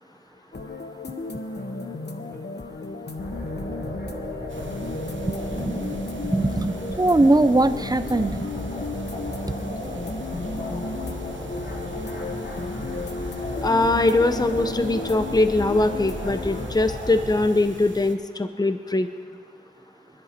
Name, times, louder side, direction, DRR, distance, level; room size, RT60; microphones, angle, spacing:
sound 1, 0.5-16.7, left 2 dB, 60° left, 1.1 m, -34 dB
sound 2, 3.2-17.4, left 1 dB, 80° left, 4.0 m, -35 dB
sound 3, 4.5-18.2, right 4 dB, 85° right, 1.0 m, -43 dB
voice 1, 5.3-6.0 6.2-8.4, right 2 dB, 20° right, 12 dB, 0.6 m, -21 dB
voice 2, 13.6-19.1, left 2 dB, 20° left, 9 dB, 0.7 m, -22 dB
26.5 x 10.5 x 4.4 m, 2.2 s
wide cardioid pair, 55°, 19 cm